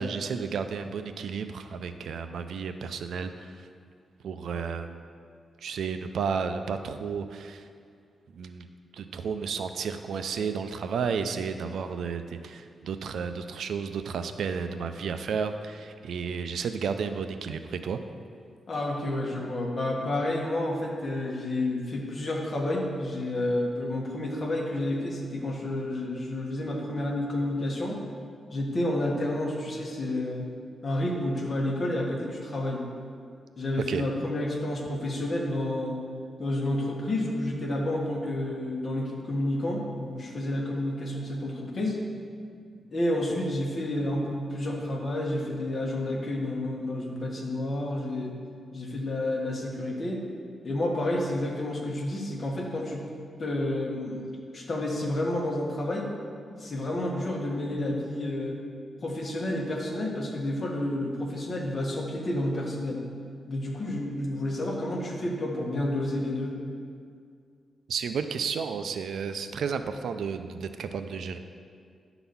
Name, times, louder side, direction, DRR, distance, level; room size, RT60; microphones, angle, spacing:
voice 1, 0.0-3.7 4.2-5.0 5.6-7.7 8.3-8.7 8.9-18.0 33.9-34.0 67.9-71.4, right 6 dB, 80° right, 9 dB, 0.5 m, -32 dB
voice 2, 18.7-28.0 28.5-30.4 30.8-32.8 33.6-36.0 36.4-42.0 42.9-48.4 48.7-50.2 50.6-53.0 53.4-56.1 56.6-58.6 59.0-63.0 63.4-66.6, left 1 dB, 45° left, -1 dB, 1.5 m, -30 dB
11.0 x 4.0 x 7.0 m, 2.2 s
cardioid pair, 110°, 0 cm